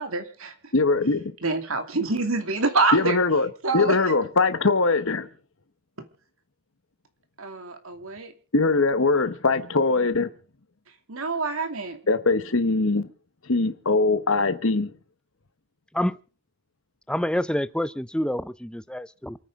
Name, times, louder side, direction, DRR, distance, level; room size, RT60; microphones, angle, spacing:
voice 1, 0.0-0.5 1.4-3.2 3.6-4.0 7.4-8.3 11.1-12.0, right 3 dB, 70° right, 2.6 m, -26 dB
voice 2, 0.7-1.3 2.9-3.5 3.7-5.3 8.5-10.3 12.1-13.1 13.5-14.9, left 3 dB, 60° left, 1.1 m, -21 dB
voice 3, 17.1-19.4, left 1 dB, 5° left, 0.6 m, -27 dB
28.5 x 9.6 x 3.7 m
head